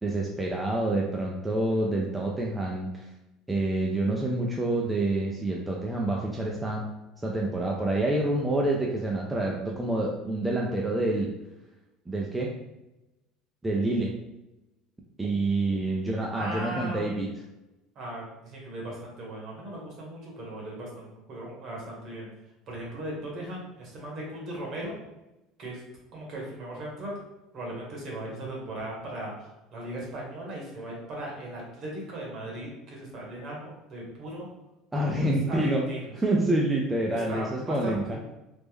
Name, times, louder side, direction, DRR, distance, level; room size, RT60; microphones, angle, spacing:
voice 1, 0.0-3.1 3.5-6.9 7.2-11.3 12.1-12.5 13.6-14.1 15.2-17.3 34.9-35.8 36.2-38.2, right 2 dB, 10° right, -1 dB, 0.4 m, -27 dB
voice 2, 16.4-17.1 17.9-22.3 22.7-25.0 25.6-25.8 26.1-27.2 27.5-34.5 35.1-36.0 37.1-38.2, right 1 dB, 50° right, -3 dB, 1.3 m, -38 dB
3.3 x 2.0 x 3.5 m, 0.97 s
supercardioid pair, 120°, 0 cm